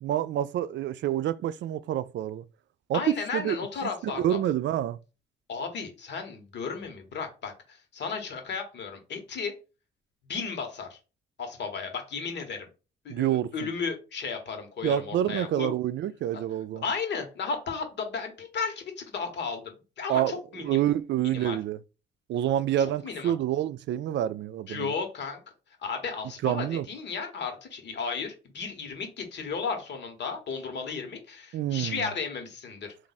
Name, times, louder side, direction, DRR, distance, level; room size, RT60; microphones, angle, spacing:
voice 1, 0.0-2.4 2.9-5.0 13.1-13.7 14.8-16.8 20.1-20.4 20.6-21.8 22.3-24.9 26.4-26.9 31.5-32.0, right 12 dB, 65° right, 0.4 m, -28 dB
voice 2, 2.9-4.4 5.5-9.5 10.3-11.0 11.4-12.7 13.0-15.7 16.3-16.4 16.8-19.6 20.0-20.8 21.2-21.6 22.8-23.3 24.7-25.4 25.8-32.9, left 5 dB, 60° left, 1.3 m, -34 dB
3.5 x 2.6 x 4.1 m
cardioid pair, 90°, 20 cm